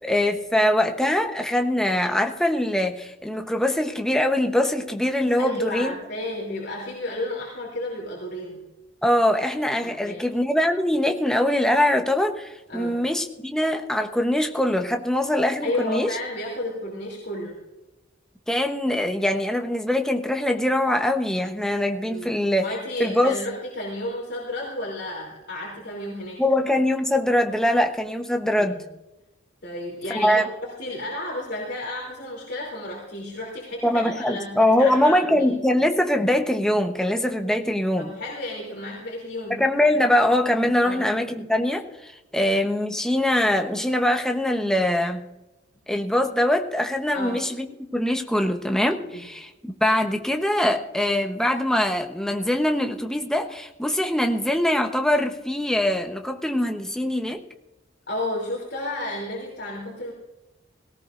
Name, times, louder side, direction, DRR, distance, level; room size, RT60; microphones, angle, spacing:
voice 1, 0.0-5.9 9.0-16.2 18.5-22.7 23.0-23.4 26.4-28.8 30.1-30.5 33.8-38.1 39.5-45.3 45.9-49.5 49.8-57.4, left 1 dB, 5° left, 4 dB, 0.9 m, -23 dB
voice 2, 5.4-8.6 9.8-10.2 12.7-13.0 15.6-17.6 22.1-22.3 22.6-26.4 28.6-28.7 29.6-35.5 38.0-39.6 40.8-41.1 47.1-47.4 49.1-49.2 58.1-60.1, left 1 dB, 55° left, -3 dB, 3.1 m, -32 dB
18.0 x 18.0 x 2.6 m, 0.99 s
head